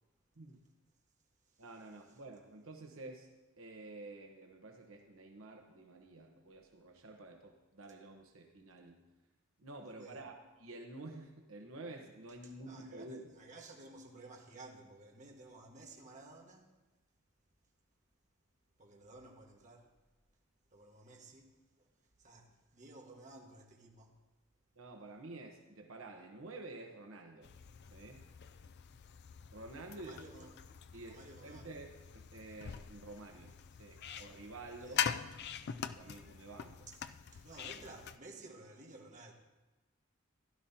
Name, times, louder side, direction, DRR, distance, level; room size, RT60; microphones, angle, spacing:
voice 1, 1.6-3.3 3.6-9.0 9.6-13.2 24.8-27.5 27.9-28.2 29.5-30.1 30.9-33.5 33.8-35.1 35.9-36.9, right 2 dB, 80° right, 3 dB, 1.1 m, -50 dB
voice 2, 9.8-10.2 12.4-16.7 18.8-19.9 20.7-21.9 22.2-24.2 29.9-30.5 31.0-31.7 34.8-35.0 36.9-37.0 37.3-39.3, right 2 dB, 35° right, 0 dB, 1.6 m, -54 dB
sound 1, 27.4-38.2, left 8 dB, 55° left, 0.4 m, -43 dB
16.0 x 12.0 x 2.8 m, 1.1 s
head